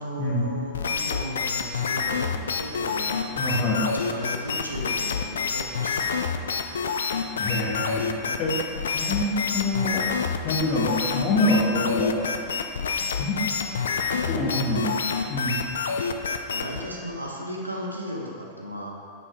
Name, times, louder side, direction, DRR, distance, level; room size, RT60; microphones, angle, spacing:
voice 1, 0.0-6.4 13.6-13.8 14.4-14.6 16.5-18.9, equal, 85° right, -1 dB, 1.0 m, -36 dB
sound 1, 0.7-16.8, left 5 dB, 65° left, 0.4 m, -27 dB
voice 2, 3.4-3.8 7.4-8.6 8.9-10.1 10.4-12.2 13.2-13.4 14.1-14.9 15.3-15.6, left 2 dB, 45° left, -2 dB, 1.4 m, -25 dB
9.3 x 5.3 x 3.7 m, 2.3 s
figure-of-eight pair, 90°, 0 cm